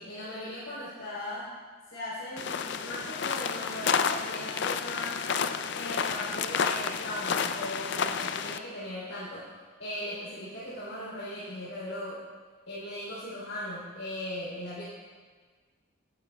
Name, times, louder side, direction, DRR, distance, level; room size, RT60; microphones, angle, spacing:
voice 1, 0.0-1.5 1.9-5.2 5.7-9.5 9.8-12.2 12.7-14.8, left 1 dB, 85° left, -9 dB, 3.4 m, -38 dB
sound 1, 2.4-8.6, left 6 dB, 55° left, 0.4 m, -30 dB
16.0 x 11.0 x 2.3 m, 1.5 s
head